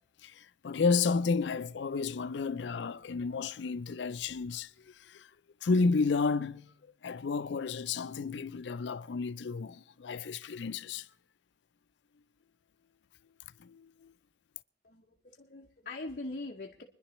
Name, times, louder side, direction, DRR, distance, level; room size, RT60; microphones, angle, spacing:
voice 1, 0.2-5.3 5.6-6.7 7.0-11.1 13.6-14.1, left 4 dB, 80° left, 0.4 m, -32 dB
voice 2, 14.8-16.8, left 2 dB, 50° left, 0.7 m, -42 dB
25.0 x 10.5 x 3.1 m
head